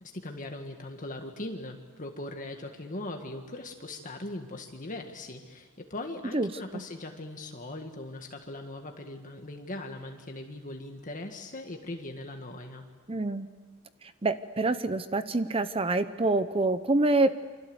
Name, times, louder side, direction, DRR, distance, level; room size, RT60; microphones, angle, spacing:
voice 1, 0.0-12.8, left 2 dB, 40° left, 3 dB, 1.8 m, -40 dB
voice 2, 6.3-6.8 13.1-13.5 14.2-17.4, right 2 dB, 25° right, 11 dB, 0.8 m, -26 dB
29.0 x 25.0 x 8.0 m, 1.4 s
head